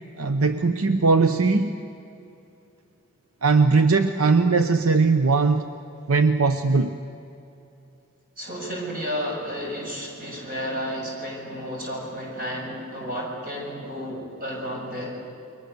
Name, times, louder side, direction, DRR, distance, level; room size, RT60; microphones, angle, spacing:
voice 1, 0.2-1.7 3.4-5.7 6.1-7.0, right 4 dB, 75° right, 8 dB, 0.9 m, -19 dB
voice 2, 8.4-15.2, equal, 40° right, -2 dB, 7.0 m, -32 dB
29.5 x 23.0 x 6.9 m, 2.8 s
head